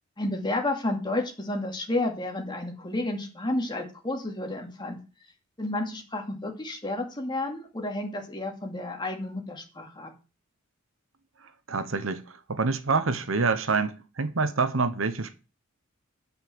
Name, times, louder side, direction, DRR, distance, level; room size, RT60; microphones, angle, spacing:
voice 1, 0.2-5.0 5.6-10.1, left 2 dB, 20° left, 2.5 m, -31 dB
voice 2, 11.4-15.4, right 4 dB, 70° right, 1.0 m, -27 dB
9.5 x 5.5 x 7.8 m
head